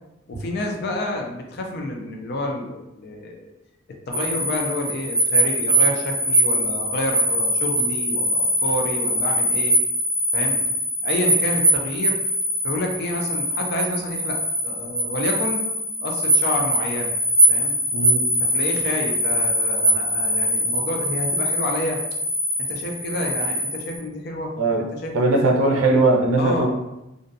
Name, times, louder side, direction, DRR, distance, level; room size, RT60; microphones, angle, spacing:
voice 1, 0.3-3.5 4.1-9.8 10.3-10.6 11.0-12.2 12.6-14.4 14.6-15.6 16.0-17.1 17.5-17.8 18.4-22.0 22.6-25.4 26.4-26.7, left 1 dB, 50° left, 1 dB, 0.4 m, -29 dB
sound 1, 4.1-24.0, equal, 25° right, 0.7 m, -22 dB
voice 2, 25.1-26.7, right 2 dB, 85° right, 2 dB, 0.5 m, -19 dB
2.5 x 2.2 x 2.6 m, 0.92 s
head